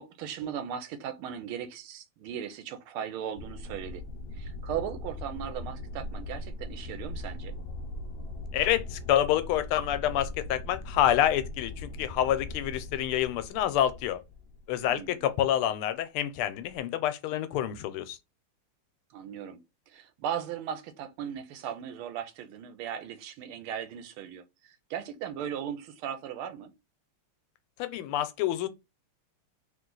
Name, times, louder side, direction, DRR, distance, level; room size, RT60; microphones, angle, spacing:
voice 1, 0.0-4.0 4.3-7.5 14.8-15.2 19.1-19.6 19.9-26.7, right 9 dB, 90° right, 1.6 m, -37 dB
sound 1, 3.4-15.4 16.6-16.8, left 2 dB, 65° left, 1.1 m, -40 dB
voice 2, 8.5-14.2 14.7-18.2 27.8-28.7, left 11 dB, 85° left, 1.5 m, -27 dB
3.7 x 2.8 x 3.8 m
omnidirectional pair, 2.3 m